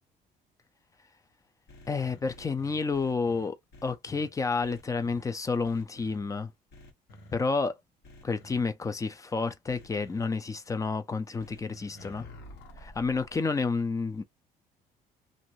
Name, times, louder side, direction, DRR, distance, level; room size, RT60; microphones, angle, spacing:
sound 1, 1.7-4.3 4.6-5.2 5.6-6.2 6.7-7.3 8.0-8.6 9.7-10.2 11.4-13.4, left 1 dB, 75° left, 1.3 m, -50 dB
voice 1, 1.9-6.5 7.3-7.8 8.2-12.3 12.8-14.2, left 4 dB, 20° left, 0.5 m, -30 dB
2.6 x 2.5 x 3.0 m
cardioid pair, 110°, 17 cm